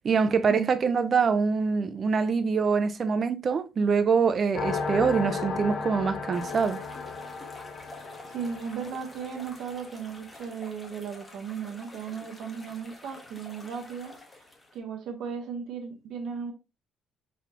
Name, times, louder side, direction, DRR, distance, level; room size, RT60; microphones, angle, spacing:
voice 1, 0.0-6.8, right 5 dB, 30° right, 0.4 m, -24 dB
sound 1, 4.5-9.9, left 4 dB, 50° left, 0.7 m, -34 dB
sound 2, 6.3-14.8, left 2 dB, 15° left, 1.0 m, -49 dB
voice 2, 7.8-14.1 14.7-16.5, right 6 dB, 65° right, 0.9 m, -36 dB
4.6 x 4.1 x 2.8 m
cardioid pair, 170°, 0 cm